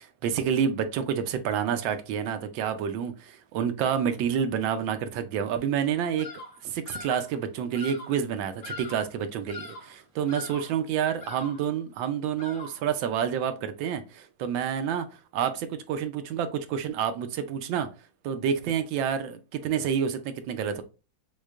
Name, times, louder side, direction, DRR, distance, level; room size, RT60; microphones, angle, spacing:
voice 1, 0.0-6.3 6.6-15.1 15.3-17.9 18.2-20.8, right 8 dB, 80° right, 1.3 m, -28 dB
Bird vocalization bird call bird song, 6.2-6.6 6.8-7.3 7.7-8.2 8.6-9.1 9.5-9.9 10.3-10.8 11.2-11.7 12.4-12.9, left 3 dB, 90° left, 0.4 m, -42 dB
6.3 x 2.3 x 2.3 m
omnidirectional pair, 2.1 m